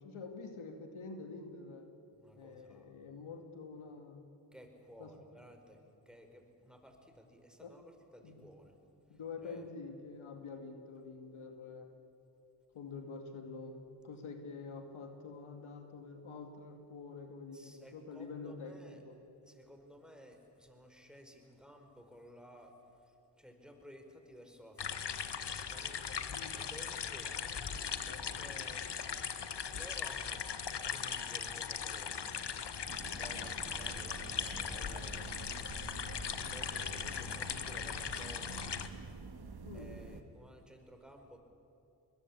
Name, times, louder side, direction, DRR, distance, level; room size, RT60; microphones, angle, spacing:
voice 1, 0.0-1.9 2.4-4.3 5.0-5.1 7.6-7.7 8.2-8.4 9.1-11.9 12.7-19.2 26.3-26.5 33.3-33.5 39.6-39.9, left 4 dB, 75° left, 5 dB, 2.4 m, -47 dB
voice 2, 2.2-3.0 4.5-5.8 6.0-8.8 9.1-9.7 17.5-19.0 19.5-25.2 25.6-26.0 26.5-27.6 28.1-29.0 29.7-32.6 32.9-36.2 36.5-38.8 39.7-41.4, equal, ahead, 5 dB, 5.0 m, -56 dB
sound 1, 24.8-38.9, left 7 dB, 55° left, 1.6 m, -39 dB
sound 2, 32.8-40.2, right 4 dB, 50° right, 2.0 m, -48 dB
22.5 x 21.0 x 8.6 m, 2.6 s
supercardioid pair, 40°, 49 cm